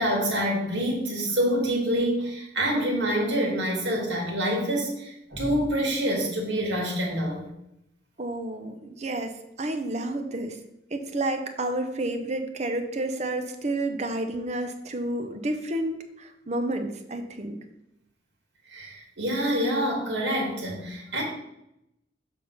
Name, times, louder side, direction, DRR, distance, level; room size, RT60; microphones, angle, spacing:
voice 1, 0.0-7.5 18.7-21.2, equal, 75° right, -1 dB, 2.1 m, -26 dB
voice 2, 8.2-10.6 10.9-17.6, right 1 dB, 35° right, 6 dB, 0.7 m, -30 dB
6.9 x 3.6 x 5.5 m, 0.84 s
head